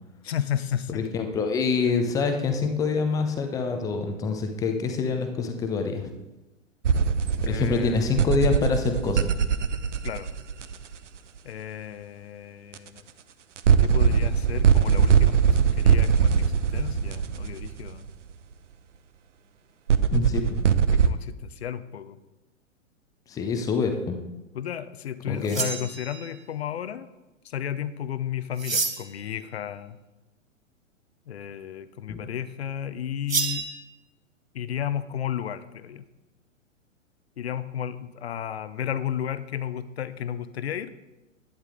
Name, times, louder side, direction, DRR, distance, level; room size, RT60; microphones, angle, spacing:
voice 1, 0.2-1.1 7.4-8.3 10.0-10.3 11.4-13.0 13.8-18.1 20.9-22.2 24.5-27.1 27.4-30.0 31.3-33.6 34.5-36.0 37.4-40.9, left 9 dB, 55° left, 14 dB, 0.7 m, -33 dB
voice 2, 0.9-6.1 7.4-9.4 20.1-20.7 23.3-24.2 25.3-25.6 32.1-32.2, left 4 dB, 10° left, 6 dB, 0.6 m, -26 dB
sound 1, 6.8-11.0 12.7-12.8 13.6-18.1 19.9-21.1, right 7 dB, 65° right, 0.7 m, -21 dB
sound 2, 25.4-26.4 28.6-29.2 33.3-33.7, right 4 dB, 80° right, 1.3 m, -29 dB
11.0 x 9.7 x 3.7 m, 1.0 s
figure-of-eight pair, 110°, 39 cm